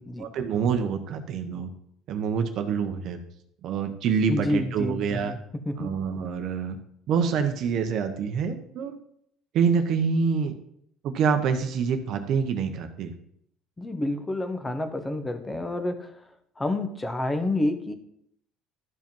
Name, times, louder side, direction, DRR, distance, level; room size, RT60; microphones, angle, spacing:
voice 1, 0.2-1.7 2.1-3.2 3.6-5.3 5.8-6.8 7.1-9.0 9.5-10.5 11.0-13.1, right 6 dB, 50° right, 7 dB, 0.9 m, -26 dB
voice 2, 4.3-5.4 5.7-5.9 13.8-16.1 16.6-17.9, left 1 dB, 10° left, 8 dB, 0.9 m, -29 dB
12.0 x 5.2 x 5.4 m, 0.70 s
cardioid pair, 160°, 0 cm